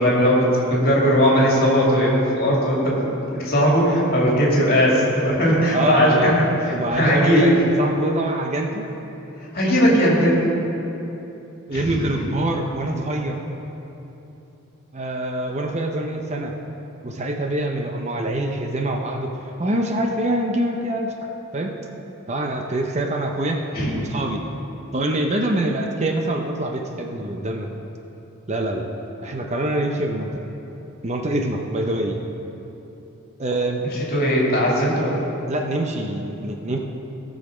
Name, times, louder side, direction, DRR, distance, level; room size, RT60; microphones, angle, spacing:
voice 1, 0.0-6.3 6.7-7.5 9.5-10.4 11.7-12.1 23.7-23.9 34.1-35.3, equal, 45° left, -4 dB, 2.6 m, -19 dB
voice 2, 5.7-6.3 6.7-8.9 9.9-10.0 11.7-13.4 14.9-16.5 17.0-21.7 22.3-23.6 23.9-24.4 24.9-27.7 28.5-28.9 29.2-30.3 31.0-32.2 33.4-33.8 35.5-36.8, right 1 dB, 30° right, 2 dB, 0.7 m, -24 dB
17.0 x 6.4 x 5.0 m, 3.0 s
head